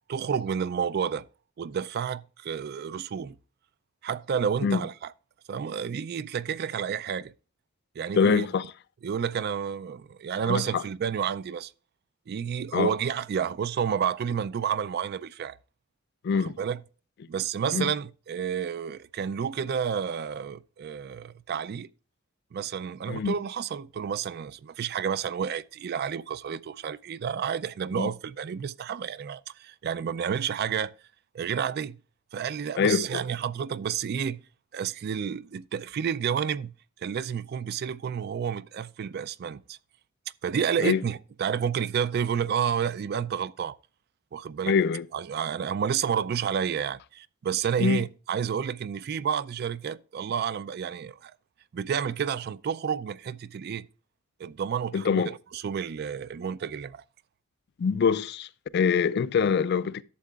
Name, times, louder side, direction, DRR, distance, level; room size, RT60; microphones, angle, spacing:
voice 1, 0.1-1.3 1.6-3.4 4.0-5.1 5.5-7.3 8.0-8.5 9.0-11.7 12.3-15.6 16.3-16.8 17.3-21.9 22.5-30.9 31.3-32.0 32.3-34.4 34.7-36.7 37.0-39.8 40.4-43.8 44.3-44.8 45.1-51.3 51.7-53.9 54.4-55.2 55.5-57.0, right 7 dB, 50° right, 0.3 m, -30 dB
voice 2, 8.1-8.7 10.4-10.8 12.7-12.9 16.2-16.6 17.7-17.9 23.1-23.4 27.9-28.1 32.8-33.2 40.8-41.0 44.7-45.1 47.8-48.0 54.9-55.3 57.8-60.0, left 6 dB, 55° left, 0.3 m, -24 dB
11.5 x 7.4 x 2.3 m
head